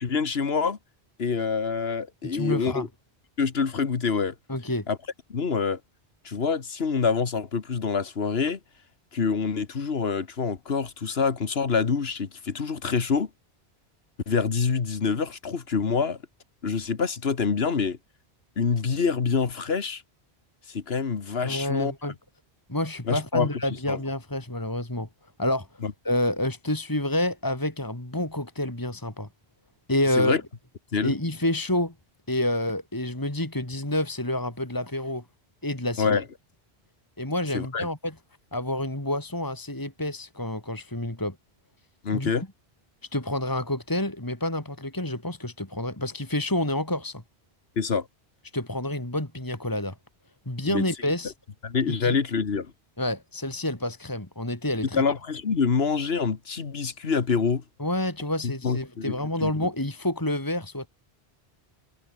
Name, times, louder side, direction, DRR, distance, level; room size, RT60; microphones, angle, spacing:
voice 1, 0.0-0.8 1.2-2.9 3.4-4.3 4.9-5.0 5.3-5.8 6.2-8.6 9.1-13.3 14.3-16.2 16.6-18.0 18.6-20.0 20.7-21.9 23.1-23.5 23.9-24.0 25.8-25.9 30.1-30.4 30.9-31.1 36.0-36.2 37.5-37.9 42.0-42.4 47.8-48.1 50.6-50.8 51.6-52.7 54.9-57.6 58.4-59.5, left 5 dB, 70° left, 1.7 m, -26 dB
voice 2, 2.3-2.9 4.5-4.9 21.4-22.1 22.7-25.1 25.4-25.7 26.0-29.3 29.9-30.4 31.0-31.9 32.3-35.2 35.6-36.2 37.2-38.1 38.5-41.4 42.1-42.3 43.1-47.2 48.5-49.9 50.5-51.3 51.9-52.2 53.0-55.0 57.8-60.9, left 1 dB, 20° left, 2.8 m, -28 dB
omnidirectional pair, 1.1 m